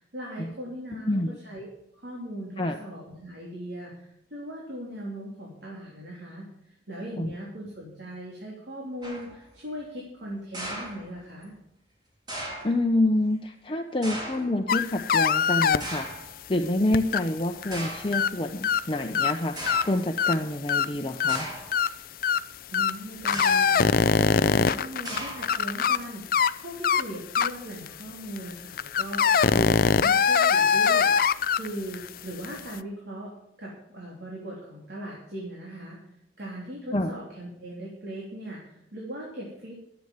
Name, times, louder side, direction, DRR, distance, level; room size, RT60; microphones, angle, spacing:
voice 1, 0.0-1.1 1.4-11.5 22.7-33.3 33.6-36.0 36.4-39.8, right 1 dB, 70° right, -4 dB, 3.6 m, -39 dB
voice 2, 0.9-1.3 2.6-2.8 7.2-7.3 12.6-16.1 16.5-19.6 19.8-21.5 36.9-37.1, left 1 dB, 30° left, 4 dB, 0.8 m, -27 dB
sound 1, 9.0-9.4 10.5-11.4 12.3-12.8 14.0-14.6 15.8-16.3 17.1-17.2 17.7-18.2 19.0-19.1 19.6-20.0 21.3-21.8 23.2-23.8 25.0-25.7, right 1 dB, 25° right, 3.5 m, -37 dB
sound 2, 14.7-15.8 16.9-17.8 18.1-18.3 18.6-18.8 19.1-19.3 19.7-19.8 20.2-20.4 20.7-20.9 21.2-21.4 21.7-21.9 22.2-22.4 22.7-22.9 23.3-26.0 26.3-26.5 26.8-27.0 27.4-27.5 27.9-28.0 28.4-28.5 28.8-31.7 31.9-32.1 32.4-32.6, left 6 dB, 55° left, 0.4 m, -22 dB
13.0 x 8.1 x 8.0 m, 0.78 s
head